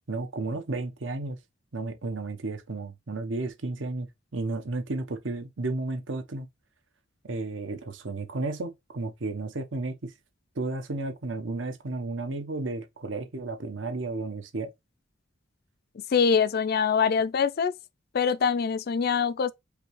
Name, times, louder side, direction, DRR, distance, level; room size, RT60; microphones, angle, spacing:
voice 1, 0.1-1.4 1.7-4.1 4.3-6.5 7.2-10.1 10.6-14.7, right 2 dB, 65° right, 0.9 m, -33 dB
voice 2, 16.1-17.8 18.1-19.5, left 6 dB, 50° left, 0.4 m, -24 dB
5.1 x 2.7 x 3.0 m
head